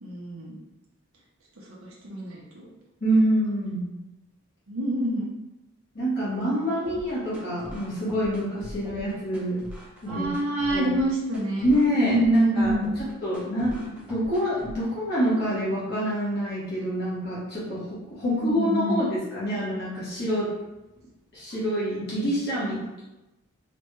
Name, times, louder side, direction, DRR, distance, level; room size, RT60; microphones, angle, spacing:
voice 1, 0.0-0.6 1.8-2.7 4.7-5.3 10.1-11.7 12.0-12.9 18.2-19.0, right 1 dB, 80° right, -4 dB, 0.6 m, -26 dB
voice 2, 3.0-3.8 5.9-9.6 10.0-10.3 10.7-10.9 11.6-12.7 13.2-17.8 18.1-20.5 21.3-23.0, equal, 50° left, -9 dB, 1.0 m, -26 dB
sound 1, 6.8-14.8, equal, 5° right, 0.4 m, -42 dB
3.2 x 2.2 x 3.0 m, 1.0 s
head